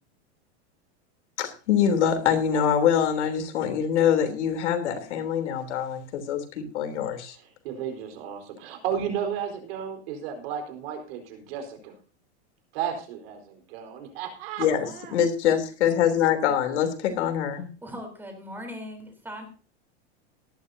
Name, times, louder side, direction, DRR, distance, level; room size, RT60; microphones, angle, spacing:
voice 1, 1.4-7.3 14.6-14.9 15.1-17.7, left 8 dB, 75° left, 7 dB, 3.3 m, -24 dB
voice 2, 7.3-11.9 12.7-15.1, right 8 dB, 55° right, 5 dB, 4.4 m, -33 dB
voice 3, 17.8-19.5, equal, 5° right, 4 dB, 3.7 m, -39 dB
18.0 x 12.5 x 2.7 m, 0.37 s
supercardioid pair, 160°, 35 cm